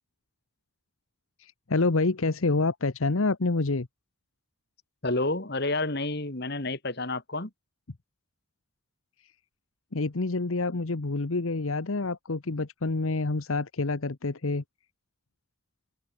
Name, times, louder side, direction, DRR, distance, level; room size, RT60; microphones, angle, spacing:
voice 1, 1.4-3.9 9.2-9.3 9.9-14.6, left 3 dB, 70° left, 1.0 m, -27 dB
voice 2, 5.0-7.5, left 2 dB, 50° left, 2.4 m, -29 dB
head